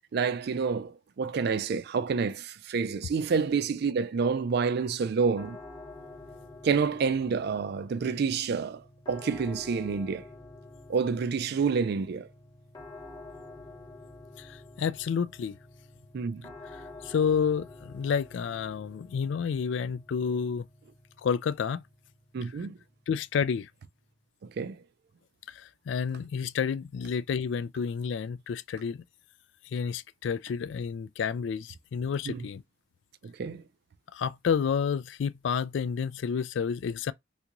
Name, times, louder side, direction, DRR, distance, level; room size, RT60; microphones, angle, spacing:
voice 1, 0.1-5.6 6.6-10.2 10.9-12.3 16.1-16.5 22.3-22.8 24.6-24.8 32.3-32.4 33.2-33.6, right 5 dB, 60° right, 0.4 m, -28 dB
sound 1, 5.4-24.3, left 2 dB, 20° left, 0.8 m, -49 dB
voice 2, 14.4-15.6 16.7-20.7 21.2-21.8 23.1-23.7 25.5-29.0 29.7-32.6 34.1-37.1, left 6 dB, 70° left, 0.3 m, -30 dB
3.5 x 2.5 x 2.9 m
head